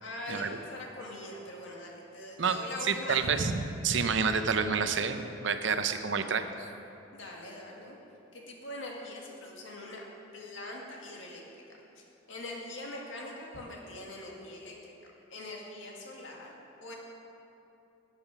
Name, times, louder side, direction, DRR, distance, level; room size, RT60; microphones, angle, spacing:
voice 1, 0.0-3.2 7.1-8.0 8.3-10.1 10.3-11.4 12.0-14.9 15.3-16.5 16.8-17.0, left 1 dB, 75° left, -1 dB, 1.9 m, -42 dB
voice 2, 2.9-6.7, right 5 dB, 65° right, 9 dB, 0.6 m, -29 dB
11.0 x 8.7 x 5.9 m, 2.9 s
head